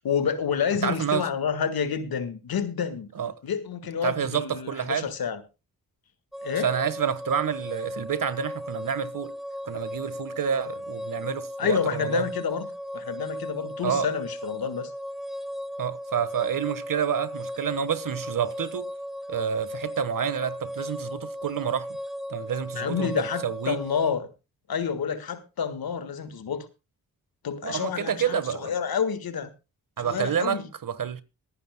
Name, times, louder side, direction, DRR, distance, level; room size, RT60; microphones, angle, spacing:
voice 1, 0.0-3.1 3.4-5.4 6.4-6.7 11.6-12.7 12.9-14.9 22.7-24.3 24.7-26.7 27.4-29.5 30.0-30.6, left 7 dB, 80° left, 1.6 m, -29 dB
voice 2, 0.8-1.3 3.1-3.3 4.0-5.1 6.5-9.3 9.6-12.2 13.8-14.1 15.8-18.9 19.3-21.9 22.3-23.8 27.6-28.7 30.0-31.2, right 8 dB, 60° right, 1.4 m, -28 dB
sound 1, 6.3-24.1, equal, ahead, 0.6 m, -36 dB
24.5 x 9.9 x 2.2 m
cardioid pair, 60°, 36 cm